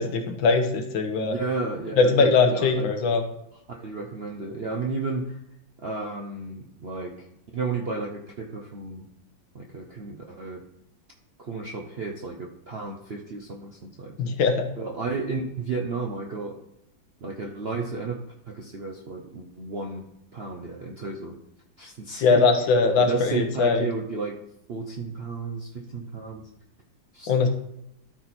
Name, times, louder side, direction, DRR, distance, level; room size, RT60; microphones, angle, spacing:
voice 1, 0.0-1.3 2.0-3.2 14.2-14.7 22.2-23.8 27.3-27.5, left 4 dB, 75° left, 5 dB, 1.8 m, -21 dB
voice 2, 1.2-2.9 3.7-5.4 5.8-7.3 7.5-9.1 9.5-10.6 11.4-14.2 14.8-16.6 17.2-18.2 18.5-20.1 20.3-21.4 21.8-22.5 22.9-24.4 24.7-26.5 27.1-27.3, right 4 dB, 55° right, 1 dB, 0.6 m, -32 dB
12.5 x 4.5 x 4.2 m, 0.80 s
omnidirectional pair, 2.1 m